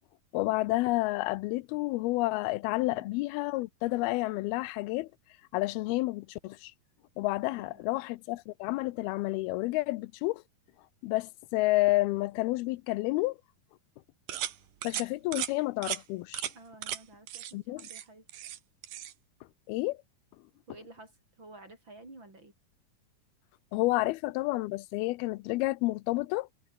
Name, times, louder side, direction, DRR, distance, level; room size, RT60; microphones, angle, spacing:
voice 1, 0.3-5.1 5.5-6.7 7.2-10.4 11.0-13.4 14.8-16.5 17.5-17.9 19.7-20.0 23.7-26.5, left 20 dB, 90° left, 2.6 m, -30 dB
voice 2, 2.7-3.1 7.5-8.0 16.5-18.2 20.7-21.1 21.4-22.5, right 2 dB, 30° right, 7.3 m, -52 dB
sound 1, 14.3-14.6 14.8-15.1 15.3-15.5 15.8-16.0 16.3-16.5 16.8-17.0 17.3-17.5 17.8-18.6 18.8-19.1, right 12 dB, 70° right, 3.1 m, -36 dB
omnidirectional pair, 4.3 m